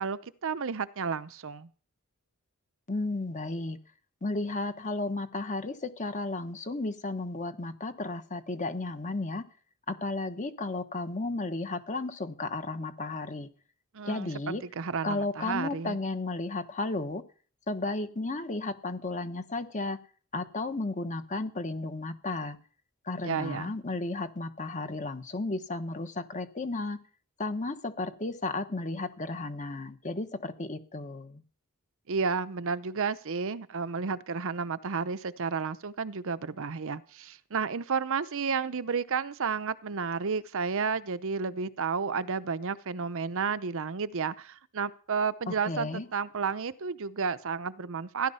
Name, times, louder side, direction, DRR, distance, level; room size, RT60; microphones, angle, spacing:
voice 1, 0.0-1.7 13.9-16.0 23.2-23.7 32.1-48.3, right 5 dB, 60° right, 13 dB, 0.7 m, -32 dB
voice 2, 2.9-3.8 4.2-9.5 9.9-13.5 14.0-14.6 15.0-17.2 17.7-20.0 20.3-22.6 23.0-27.0 27.4-31.4 45.5-46.1, left 2 dB, 35° left, 9 dB, 1.3 m, -33 dB
16.0 x 11.0 x 5.6 m, 0.42 s
head